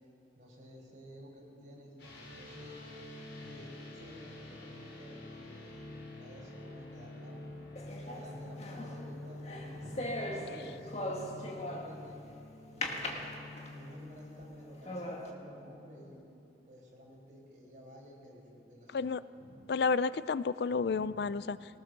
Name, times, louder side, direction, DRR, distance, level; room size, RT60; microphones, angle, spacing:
voice 1, 0.4-1.9 2.4-2.8 3.4-5.9 6.1-7.4 8.0-12.2 12.8-13.3 13.7-16.2 16.7-19.1 19.4-19.7 20.8-21.3, equal, 45° right, -3 dB, 5.4 m, -52 dB
sound 1, 2.0-16.2, left 2 dB, 85° left, 5.0 m, -48 dB
sound 2, 7.8-12.1 12.8-13.9 14.4-14.5 14.9-15.3, left 1 dB, 35° left, 1.8 m, -39 dB
voice 2, 18.9-19.2 19.7-21.6, left 5 dB, 65° left, 16 dB, 0.4 m, -31 dB
21.5 x 18.5 x 6.6 m, 2.8 s
head